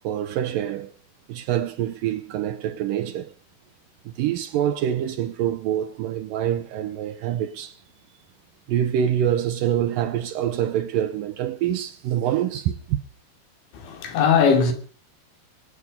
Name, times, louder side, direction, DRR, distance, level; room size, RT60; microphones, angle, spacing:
voice 1, 0.0-0.9 1.3-3.3 4.1-7.7 8.7-13.0, right 10 dB, 85° right, 2.0 m, -25 dB
voice 2, 13.8-14.7, left 6 dB, 80° left, 4.9 m, -19 dB
25.0 x 8.3 x 5.3 m
omnidirectional pair, 5.2 m